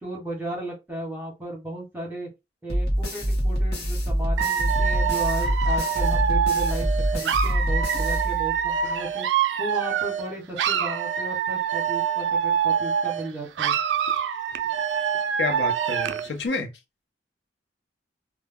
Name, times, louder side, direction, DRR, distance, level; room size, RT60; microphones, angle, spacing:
voice 1, 0.0-2.3 2.6-9.3 9.6-13.7, right 1 dB, 10° right, 1.0 m, -35 dB
sound 1, 2.7-8.8, equal, 60° left, 1.0 m, -25 dB
Dog / Alarm, 4.4-10.3 10.6-13.3 13.6-16.3, right 8 dB, 85° right, 0.3 m, -25 dB
voice 2, 15.4-16.7, left 3 dB, 80° left, 0.6 m, -29 dB
2.2 x 2.1 x 3.5 m
head